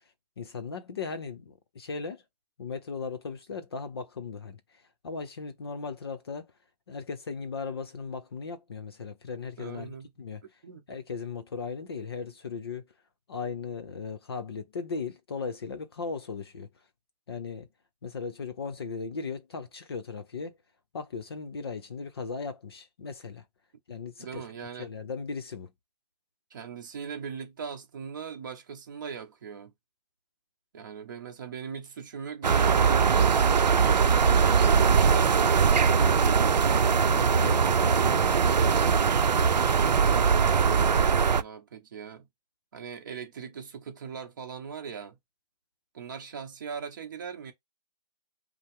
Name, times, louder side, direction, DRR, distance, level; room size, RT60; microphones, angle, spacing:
voice 1, 0.4-2.2 2.6-6.5 6.9-10.4 10.9-12.9 13.3-16.7 17.3-17.7 18.0-20.6 20.9-23.4 23.9-24.4 24.8-25.7 37.0-38.5, left 5 dB, 35° left, 0.6 m, -37 dB
voice 2, 9.6-10.1 10.6-10.8 24.2-24.9 26.5-29.7 30.7-36.5 40.0-42.3 42.7-45.2 45.9-47.5, right 6 dB, 30° right, 1.0 m, -39 dB
sound 1, 32.4-41.4, right 6 dB, 90° right, 0.6 m, -21 dB
5.4 x 2.0 x 3.6 m
hypercardioid pair, 165°, 21 cm